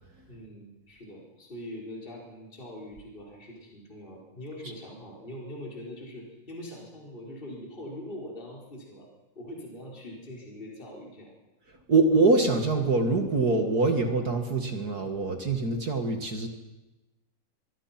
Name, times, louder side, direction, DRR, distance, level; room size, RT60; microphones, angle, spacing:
voice 1, 0.3-9.1 9.3-11.3, left 1 dB, 15° left, -2 dB, 4.7 m, -42 dB
voice 2, 11.9-16.5, right 3 dB, 35° right, 5 dB, 1.6 m, -24 dB
24.0 x 23.0 x 5.9 m, 1.0 s
omnidirectional pair, 3.9 m